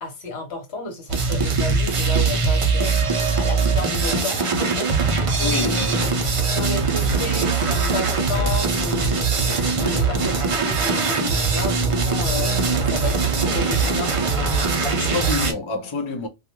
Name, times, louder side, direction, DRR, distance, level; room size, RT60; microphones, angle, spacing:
voice 1, 0.0-14.5, left 4 dB, 65° left, 1.2 m, -32 dB
sound 1, 1.1-15.5, right 4 dB, 45° right, 0.4 m, -21 dB
voice 2, 5.4-5.8 14.8-16.3, left 3 dB, 40° left, 0.4 m, -27 dB
2.4 x 2.3 x 2.8 m
omnidirectional pair, 1.2 m